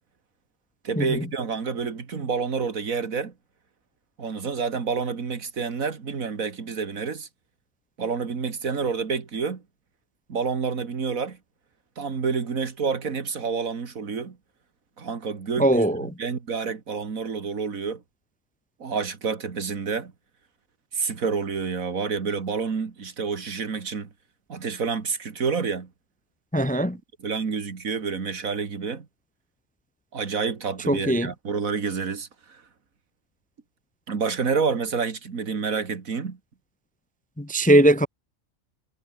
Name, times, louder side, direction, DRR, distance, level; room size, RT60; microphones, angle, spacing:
voice 1, 0.8-3.3 4.2-7.3 8.0-9.6 10.3-11.4 12.0-14.4 15.0-18.0 18.8-20.1 20.9-24.1 24.5-25.9 27.2-29.1 30.1-32.6 34.1-36.4, right 5 dB, 85° right, 2.4 m, -28 dB
voice 2, 15.6-16.1 26.5-27.0 30.9-31.3 37.4-38.1, right 1 dB, 10° left, 0.6 m, -20 dB
omnidirectional pair, 1.4 m